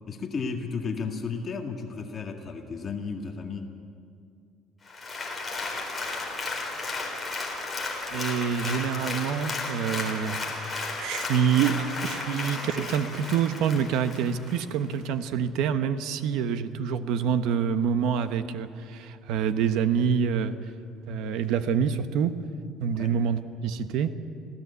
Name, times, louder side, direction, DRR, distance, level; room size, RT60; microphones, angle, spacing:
voice 1, 0.1-3.7 22.9-23.1, left 5 dB, 30° left, 2 dB, 1.9 m, -33 dB
Applause, 4.9-14.6 15.1-15.2, left 3 dB, 10° left, 4.0 m, -34 dB
voice 2, 8.1-20.6 21.1-22.4 22.8-24.2, right 7 dB, 70° right, 10 dB, 1.2 m, -27 dB
26.5 x 16.5 x 8.3 m, 2.3 s
cardioid pair, 155°, 0 cm